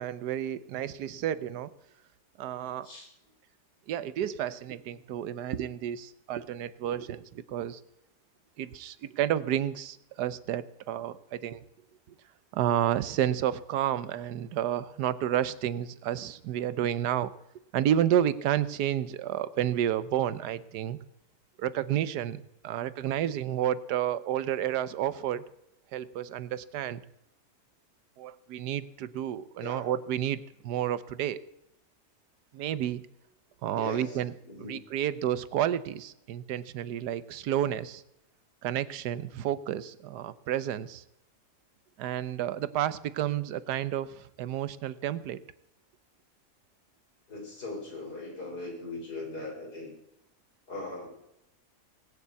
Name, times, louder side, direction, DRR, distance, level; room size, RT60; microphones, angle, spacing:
voice 1, 0.0-1.7 2.4-2.9 3.9-7.8 8.6-11.6 12.5-17.3 17.7-21.0 21.6-25.4 25.9-27.0 28.2-31.4 32.5-33.0 33.6-34.3 34.6-38.0 38.6-41.0 42.0-45.4, right 11 dB, 85° right, 15 dB, 1.3 m, -30 dB
voice 2, 33.7-34.2 34.4-35.0 47.3-49.9 50.7-51.1, left 2 dB, 75° left, 0 dB, 5.0 m, -40 dB
19.0 x 6.9 x 8.2 m, 0.85 s
omnidirectional pair, 1.7 m